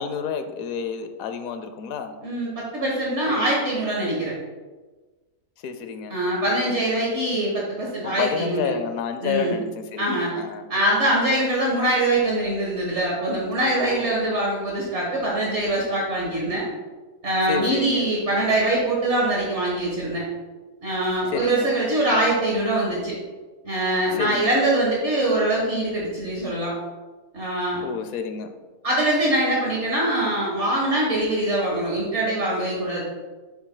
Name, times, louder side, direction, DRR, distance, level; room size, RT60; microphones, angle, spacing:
voice 1, 0.0-2.1 5.6-6.2 8.0-10.6 13.9-14.1 17.5-18.1 21.3-21.7 24.1-24.6 27.8-28.5, left 7 dB, 70° left, 8 dB, 1.0 m, -30 dB
voice 2, 2.2-4.3 6.1-8.7 9.2-9.5 10.0-10.3 10.7-16.6 17.2-20.2 20.8-23.1 23.6-26.7 27.3-27.8 28.8-33.0, right 1 dB, 50° right, -4 dB, 1.5 m, -23 dB
7.3 x 7.2 x 2.2 m, 1.3 s
omnidirectional pair, 1.6 m